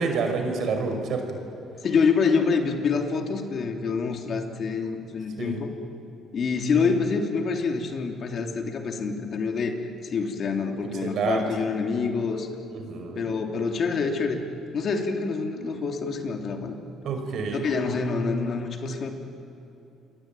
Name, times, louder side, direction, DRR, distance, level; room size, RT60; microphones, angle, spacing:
voice 1, 0.0-1.4 5.4-5.6 11.0-11.4 12.7-13.2 17.0-17.7, right 4 dB, 60° right, 5 dB, 5.3 m, -28 dB
voice 2, 1.8-5.7 6.3-9.8 10.0-12.5 13.2-14.4 14.7-16.8 17.5-19.1, left 5 dB, 50° left, 3 dB, 3.2 m, -26 dB
28.5 x 22.5 x 9.2 m, 2.9 s
cardioid pair, 90°, 0 cm